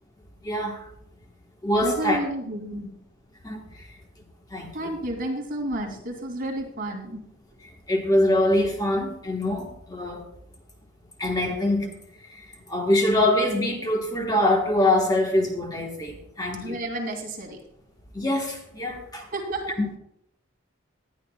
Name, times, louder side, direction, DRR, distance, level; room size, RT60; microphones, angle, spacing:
voice 1, 0.4-0.8 1.6-2.2 3.4-3.6 4.5-4.7 7.9-10.2 11.2-11.9 12.3-12.4 12.7-16.8 18.1-19.2 19.8-20.0, left 1 dB, 20° left, 1 dB, 1.3 m, -24 dB
voice 2, 1.8-2.9 4.7-7.2 16.6-17.6 19.3-20.0, right 1 dB, 45° right, -1 dB, 2.6 m, -31 dB
19.0 x 11.0 x 2.3 m, 0.74 s
head